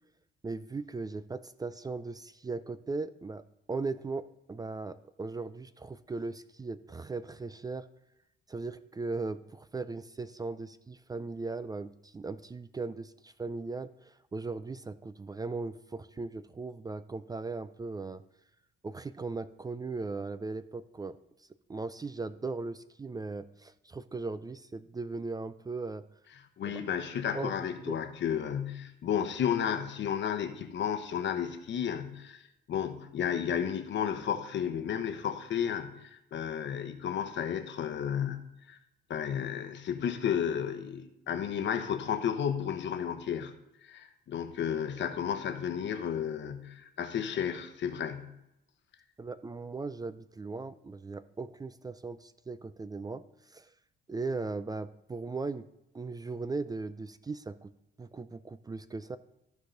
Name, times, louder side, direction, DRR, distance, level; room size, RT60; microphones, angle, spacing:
voice 1, 0.4-3.4 3.7-7.9 8.5-18.2 18.8-21.2 21.7-26.0 26.7-26.8 27.3-28.0 49.2-53.7 54.1-55.7 55.9-57.7 58.0-59.2, right 3 dB, 20° right, 14 dB, 0.4 m, -38 dB
voice 2, 26.6-38.8 39.1-43.5 43.8-48.3, left 8 dB, 65° left, 8 dB, 1.0 m, -33 dB
14.5 x 4.8 x 3.9 m, 0.86 s
cardioid pair, 90°, 20 cm